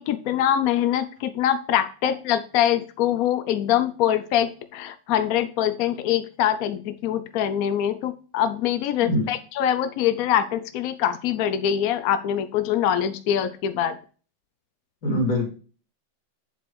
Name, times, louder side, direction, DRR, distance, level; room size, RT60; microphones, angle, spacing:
voice 1, 0.0-14.0, left 10 dB, 75° left, 11 dB, 0.8 m, -24 dB
voice 2, 15.0-15.5, left 1 dB, 50° left, 1 dB, 3.0 m, -23 dB
7.7 x 4.9 x 4.6 m, 0.38 s
omnidirectional pair, 2.1 m